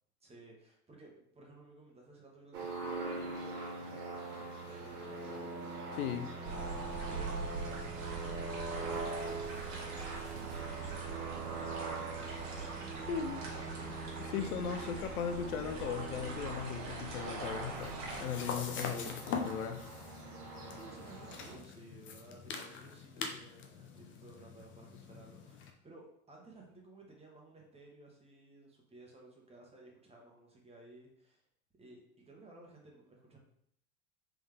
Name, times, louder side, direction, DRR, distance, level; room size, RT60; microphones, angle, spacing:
voice 1, 0.2-7.4 7.7-9.8 10.1-14.9 17.4-17.9 20.5-31.4 31.8-33.4, right 2 dB, 15° right, -1 dB, 1.2 m, -57 dB
sound 1, 2.5-21.6, right 3 dB, 85° right, 1.0 m, -42 dB
sound 2, 6.4-18.3, right 3 dB, 40° right, 1.3 m, -43 dB
voice 2, 13.1-13.4 14.2-19.9, left 7 dB, 80° left, 8 dB, 0.6 m, -38 dB
sound 3, 17.4-25.7, left 5 dB, 30° left, 0.6 m, -43 dB
3.5 x 3.4 x 3.4 m, 0.71 s
hypercardioid pair, 85°, 44 cm